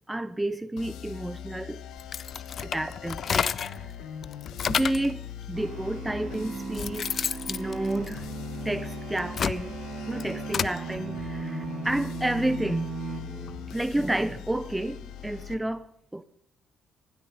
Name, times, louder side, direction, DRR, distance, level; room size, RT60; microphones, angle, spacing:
voice 1, 0.1-1.8 2.6-3.9 4.7-8.2 8.6-9.7 10.1-12.9 13.7-15.9 16.1-16.2, right 1 dB, 10° right, 0.6 m, -31 dB
sound 1, 0.8-15.6, left 9 dB, 85° left, 1.2 m, -41 dB
sound 2, 2.0-3.8 4.2-5.1 5.9-6.0 6.5-8.6 9.1-10.8, left 7 dB, 55° left, 0.5 m, -30 dB
sound 3, 5.6-13.9, right 3 dB, 50° right, 2.8 m, -37 dB
15.5 x 8.4 x 9.0 m
cardioid pair, 90°, 0 cm